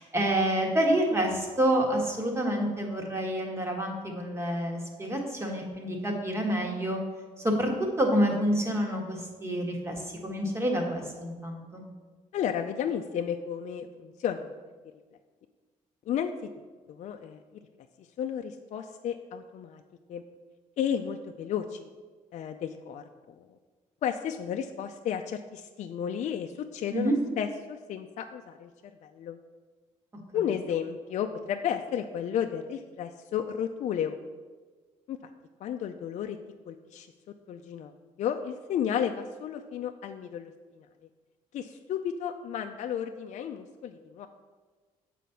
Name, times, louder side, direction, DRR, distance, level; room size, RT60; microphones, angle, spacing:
voice 1, 0.0-7.0 7.4-7.7 8.0-11.8 26.9-27.2, right 1 dB, 20° right, 1 dB, 1.5 m, -28 dB
voice 2, 12.3-14.5 16.1-16.3 16.9-17.4 18.2-19.8 20.1-20.2 20.8-21.9 22.3-23.4 24.0-28.7 29.0-29.4 30.3-34.2 35.1-35.2 35.6-36.4 36.7-37.1 37.5-37.9 38.2-40.5 41.5-44.3, left 8 dB, 60° left, 5 dB, 0.4 m, -33 dB
7.5 x 4.2 x 6.9 m, 1.4 s
cardioid pair, 130°, 14 cm